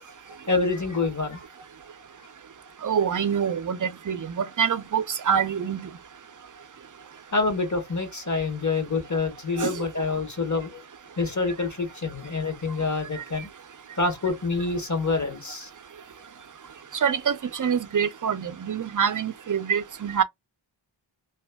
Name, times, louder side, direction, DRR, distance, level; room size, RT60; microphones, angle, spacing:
voice 1, 0.3-1.5 7.3-10.8 11.2-13.5 13.9-15.7, left 3 dB, 40° left, 1.3 m, -27 dB
voice 2, 2.8-5.9 9.6-9.9 13.1-13.2 17.0-20.2, right 7 dB, 45° right, 0.5 m, -26 dB
2.9 x 2.4 x 2.2 m
wide cardioid pair, 40°, 46 cm